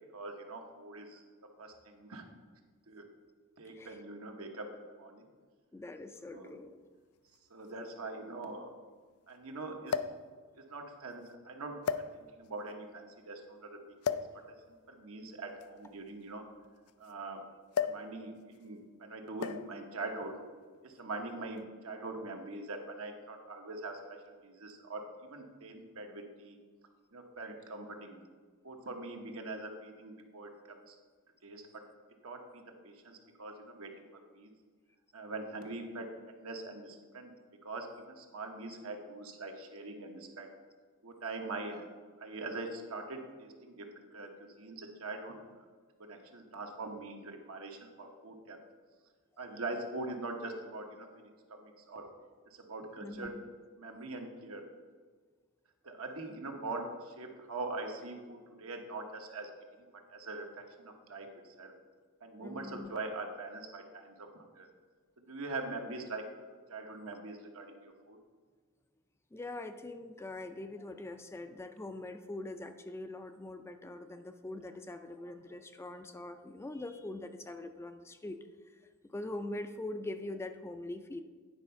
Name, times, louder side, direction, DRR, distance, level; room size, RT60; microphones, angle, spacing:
voice 1, 0.1-1.2 1.6-2.3 2.9-3.1 3.6-4.7 5.0-5.2 6.2-6.6 7.5-8.7 9.3-10.0 10.5-11.8 12.1-13.8 14.1-14.2 14.7-16.4 17.0-17.4 17.8-20.4 20.8-26.6 27.1-28.2 28.6-31.0 31.4-31.6 32.2-34.0 34.3-34.5 35.1-37.3 37.6-40.5 41.0-41.9 42.2-45.4 46.0-48.6 49.4-52.1 52.5-53.4 53.8-54.6 55.8-59.5 60.1-61.7 62.2-64.7 65.2-66.2 66.7-68.2, right 2 dB, 80° right, 3 dB, 1.1 m, -43 dB
voice 2, 3.6-4.0 5.7-6.8 21.6-21.7 53.0-53.3 62.4-62.9 69.3-78.4 79.1-81.2, left 2 dB, 10° left, 8 dB, 0.3 m, -43 dB
sound 1, 6.1-6.2 7.3-7.4 7.7-7.8 9.9-10.3 11.1-11.3 11.8-12.5 14.0-14.4 15.5-17.1 17.7-18.1 18.4-18.6 19.4-19.8 20.7-21.0, left 7 dB, 90° left, 0.4 m, -35 dB
9.7 x 4.3 x 5.6 m, 1.5 s
head